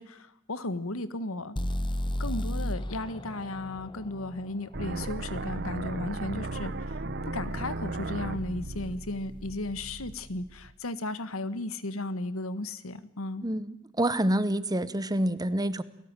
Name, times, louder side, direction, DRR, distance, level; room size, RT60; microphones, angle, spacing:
voice 1, 0.0-1.6 2.2-13.4, left 2 dB, 85° left, 14 dB, 1.6 m, -35 dB
sound 1, 1.6-5.5, left 1 dB, 25° left, 1.0 m, -33 dB
sound 2, 4.7-10.7, right 2 dB, 55° right, 1.3 m, -36 dB
voice 2, 13.4-15.8, right 1 dB, 20° right, 15 dB, 1.1 m, -27 dB
29.0 x 18.5 x 9.0 m, 0.79 s
head